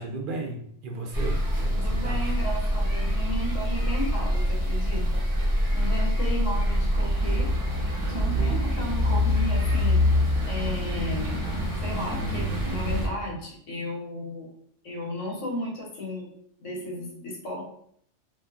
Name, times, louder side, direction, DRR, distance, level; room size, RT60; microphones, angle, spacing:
voice 1, 0.0-2.2 8.3-8.6, right 3 dB, 55° right, 1 dB, 0.6 m, -35 dB
sound 1, 1.1-13.1, equal, 20° right, 0.8 m, -25 dB
voice 2, 1.7-5.3 5.7-7.5 8.1-10.0 10.5-11.3 11.8-14.5 14.8-16.3 16.6-17.6, left 1 dB, 75° left, -2 dB, 1.2 m, -34 dB
2.7 x 2.4 x 3.4 m, 0.68 s
omnidirectional pair, 1.3 m